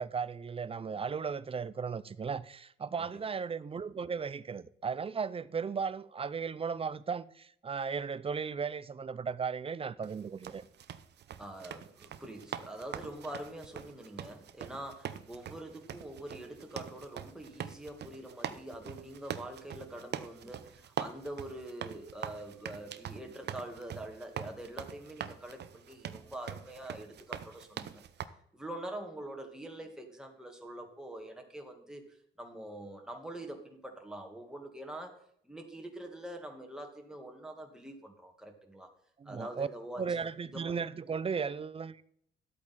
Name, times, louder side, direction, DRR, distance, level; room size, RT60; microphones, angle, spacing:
voice 1, 0.0-10.6 39.2-39.7 40.0-42.0, right 6 dB, 30° right, 0.5 m, -36 dB
sound 1, 10.0-28.3, right 9 dB, 60° right, 0.7 m, -43 dB
voice 2, 11.4-28.1 28.5-35.2 35.4-38.9 39.2-40.7, right 1 dB, 5° right, 1.8 m, -45 dB
12.0 x 8.4 x 4.2 m
cardioid pair, 90°, 20 cm